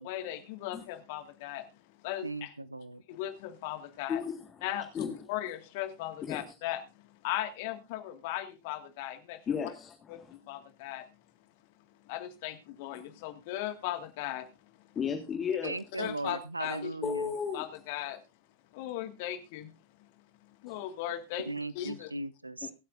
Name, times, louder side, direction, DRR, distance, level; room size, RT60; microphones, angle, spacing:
voice 1, 0.0-1.7 2.0-2.5 3.1-4.2 4.6-6.8 7.2-9.4 10.1-11.0 12.1-14.5 16.0-16.9 17.5-18.2 18.7-19.7 20.6-21.5 21.8-22.1, left 13 dB, 50° left, 1.8 m, -37 dB
voice 2, 2.2-3.0 15.6-17.3 21.4-22.7, right 2 dB, 85° right, 0.6 m, -37 dB
voice 3, 4.1-4.7 4.9-5.1 6.3-6.4 9.5-10.4 12.9-13.0 15.0-15.8 16.6-16.8 17.0-17.7 20.7-20.8, left 6 dB, 25° left, 1.7 m, -34 dB
23.5 x 8.5 x 2.6 m
figure-of-eight pair, 90°, 0 cm